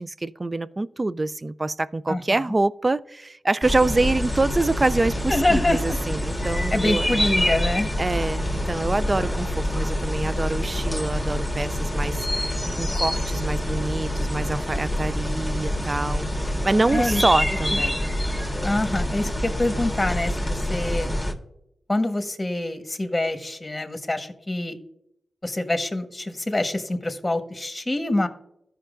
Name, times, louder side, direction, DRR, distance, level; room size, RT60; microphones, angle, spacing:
voice 1, 0.0-7.3 8.0-16.3 16.6-18.0, right 2 dB, 35° right, 0.3 m, -25 dB
voice 2, 2.1-2.4 5.3-5.8 6.7-7.9 16.9-17.2 17.7-17.8 18.6-21.1 21.9-24.8 25.4-28.3, left 1 dB, 25° left, 1.2 m, -25 dB
sound 1, 3.6-21.3, left 1 dB, 5° left, 1.5 m, -26 dB
13.5 x 5.7 x 2.5 m
cardioid pair, 45°, 0 cm